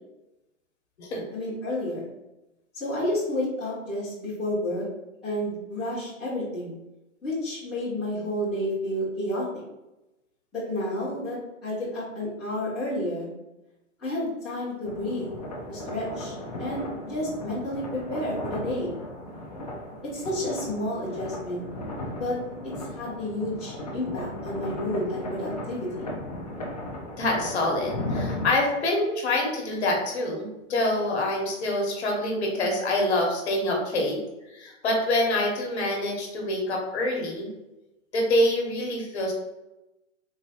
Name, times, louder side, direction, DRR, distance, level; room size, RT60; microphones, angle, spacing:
voice 1, 1.3-2.0 2.7-4.8 5.2-6.8 7.2-9.5 10.5-13.3 14.0-15.3 15.7-18.9 20.1-21.6 22.2-22.4 22.9-26.0, left 1 dB, ahead, -17 dB, 0.9 m, -30 dB
sound 1, 14.8-28.5, left 1 dB, 35° left, 0.4 m, -36 dB
voice 2, 27.2-34.2 34.5-37.5 38.1-39.3, left 1 dB, 55° left, 0 dB, 1.1 m, -26 dB
3.8 x 2.9 x 2.9 m, 0.97 s
hypercardioid pair, 175°, 39 cm